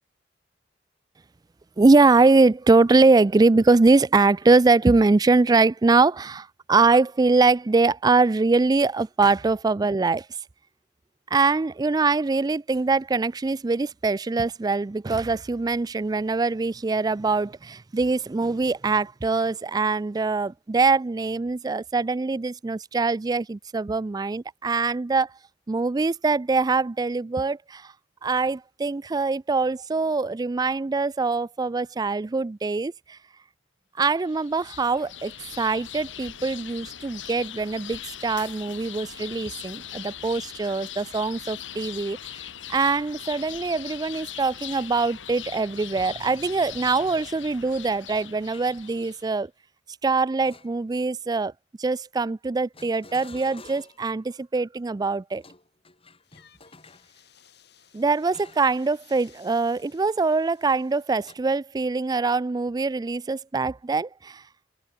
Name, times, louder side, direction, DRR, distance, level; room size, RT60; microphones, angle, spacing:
voice 1, 1.8-10.3 11.3-25.3 25.7-27.9 28.2-33.2 34.0-42.2 42.7-49.5 50.0-51.5 51.8-55.4 57.9-64.4, right 3 dB, 20° right, 0.3 m, -23 dB
sound 1, 34.2-49.3, left 11 dB, 90° left, 1.8 m, -40 dB
sound 2, 48.5-48.9 50.4-51.2 52.7-54.1 55.3-57.1 58.3-58.8 59.2-59.4 61.2-61.3, left 3 dB, 30° left, 6.3 m, -49 dB
sound 3, 56.2-61.3, left 9 dB, 60° left, 6.7 m, -58 dB
head